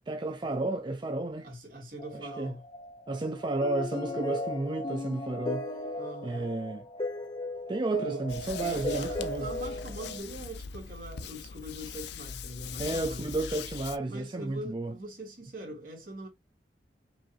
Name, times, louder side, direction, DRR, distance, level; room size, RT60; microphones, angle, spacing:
voice 1, 0.0-1.5 2.1-2.5 3.1-5.6 6.2-6.8 7.7-9.5 12.8-14.9, right 2 dB, 25° right, 0.5 m, -32 dB
voice 2, 1.4-2.6 6.0-6.5 8.0-8.3 8.6-13.3 14.0-16.3, right 1 dB, 50° right, 2.4 m, -42 dB
sound 1, 2.0-10.2, left 1 dB, 25° left, 1.0 m, -37 dB
sound 2, 8.3-14.0, left 6 dB, 65° left, 0.5 m, -41 dB
5.2 x 2.9 x 2.7 m
head